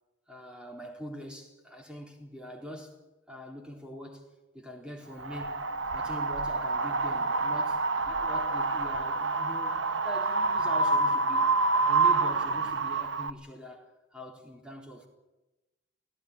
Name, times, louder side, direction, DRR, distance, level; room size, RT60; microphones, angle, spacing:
voice 1, 0.3-3.0 3.3-4.3 4.5-5.6 5.9-11.4 11.8-15.1, equal, 5° right, 4.1 m, -43 dB
Wind, 5.2-13.3, right 3 dB, 80° right, 1.0 m, -27 dB
19.0 x 17.0 x 9.9 m
head